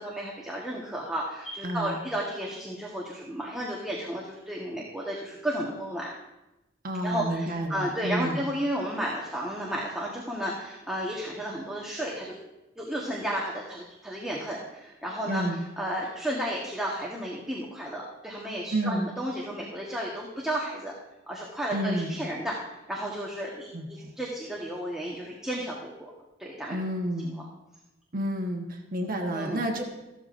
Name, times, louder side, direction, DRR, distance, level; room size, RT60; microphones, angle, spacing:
voice 1, 0.0-6.1 7.0-12.4 12.8-15.4 15.8-20.9 21.3-26.1 26.4-26.8 29.3-29.6, right 1 dB, 5° right, -4 dB, 1.3 m, -33 dB
voice 2, 1.6-2.0 6.8-8.5 15.3-15.6 18.7-19.1 21.7-22.2 23.7-24.1 26.7-27.4 28.1-29.8, right 1 dB, 50° right, 2 dB, 1.2 m, -30 dB
15.0 x 12.5 x 2.6 m, 0.98 s
head